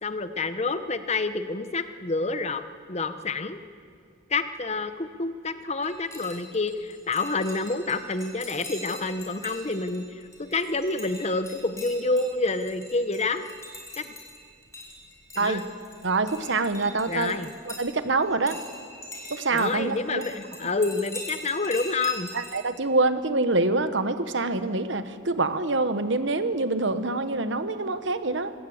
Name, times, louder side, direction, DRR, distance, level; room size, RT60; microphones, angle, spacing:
voice 1, 0.0-2.6 2.9-3.6 4.3-10.0 10.4-13.4 14.0-14.1 15.4-15.6 17.1-17.5 19.5-22.3, left 3 dB, 35° left, 11 dB, 0.9 m, -28 dB
sound 1, 5.8-17.8 18.2-22.6, left 1 dB, 15° left, 4.0 m, -43 dB
voice 2, 16.0-18.6 19.3-20.2 22.3-28.5, right 3 dB, 65° right, 11 dB, 1.1 m, -26 dB
25.0 x 17.0 x 7.9 m, 2.3 s
head